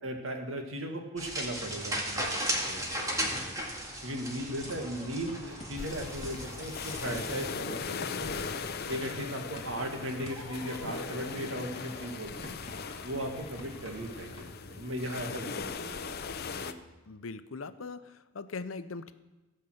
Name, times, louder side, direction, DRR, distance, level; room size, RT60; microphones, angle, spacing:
voice 1, 0.0-3.6 4.0-8.4 8.9-12.5 13.0-16.2 16.5-16.8, right 1 dB, 75° right, 3 dB, 1.9 m, -37 dB
sound 1, 1.2-7.5, right 1 dB, 15° right, 1.9 m, -36 dB
sound 2, 4.6-14.5, left 1 dB, 30° left, 2.3 m, -47 dB
sound 3, 5.8-16.7, left 5 dB, 50° left, 0.6 m, -39 dB
voice 2, 17.1-19.1, left 4 dB, 85° left, 12 dB, 0.7 m, -40 dB
16.0 x 5.6 x 7.9 m, 1.1 s
head